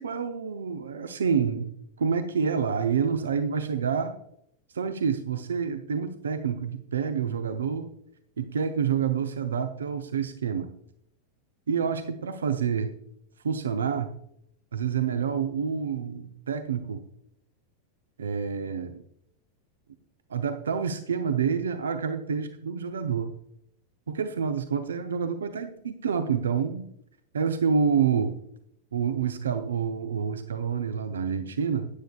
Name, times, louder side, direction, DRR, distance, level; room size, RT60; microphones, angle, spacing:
voice 1, 0.0-1.7 2.0-4.1 4.7-7.9 8.4-10.7 11.7-12.9 13.4-14.1 14.7-17.0 18.2-19.0 20.3-23.3 24.1-26.9 27.3-28.3 28.9-31.9, right 6 dB, 70° right, 8 dB, 0.6 m, -28 dB
13.0 x 9.2 x 2.4 m, 0.72 s
figure-of-eight pair, 90°, 0 cm